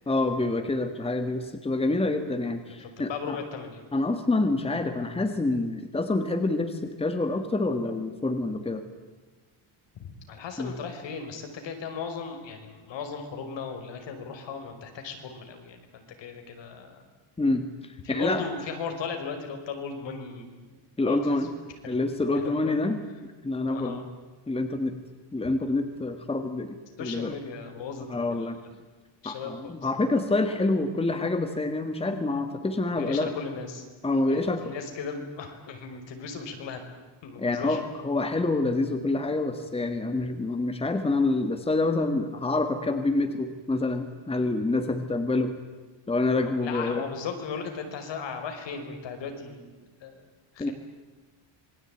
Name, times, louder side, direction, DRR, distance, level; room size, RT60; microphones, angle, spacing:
voice 1, 0.1-3.4 3.9-8.8 10.6-10.7 17.4-18.4 21.0-21.5 21.9-23.0 23.4-24.0 24.5-24.9 25.3-27.3 28.1-28.6 29.2-33.3 34.0-34.7 37.4-45.5 46.1-47.0 50.6-50.7, left 2 dB, 10° left, 8 dB, 1.7 m, -27 dB
voice 2, 2.8-3.8 10.0-17.1 18.0-20.8 21.0-21.2 21.8-22.0 22.4-22.8 23.7-24.0 27.0-28.7 29.2-29.9 33.0-33.8 34.3-36.8 37.2-37.8 46.4-49.7 50.0-50.2 50.5-50.7, left 5 dB, 60° left, 5 dB, 5.5 m, -37 dB
27.0 x 22.0 x 9.1 m, 1.3 s
cardioid pair, 155°, 48 cm